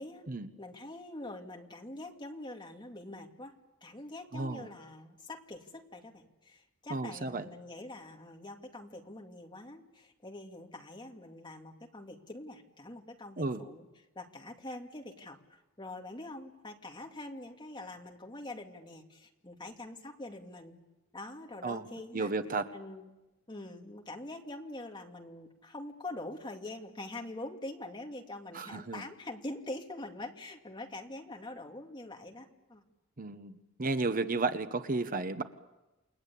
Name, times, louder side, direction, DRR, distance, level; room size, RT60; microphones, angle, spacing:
voice 1, 0.6-3.6 3.8-13.8 14.2-20.8 21.1-22.3 22.7-23.1 23.5-32.8, left 2 dB, 25° left, 2 dB, 2.5 m, -44 dB
voice 2, 4.3-4.7 6.9-7.5 13.4-13.6 21.6-21.8 22.1-22.7 28.5-29.0 33.2-35.4, right 3 dB, 45° right, 10 dB, 1.0 m, -33 dB
29.0 x 20.5 x 8.5 m, 1.1 s
head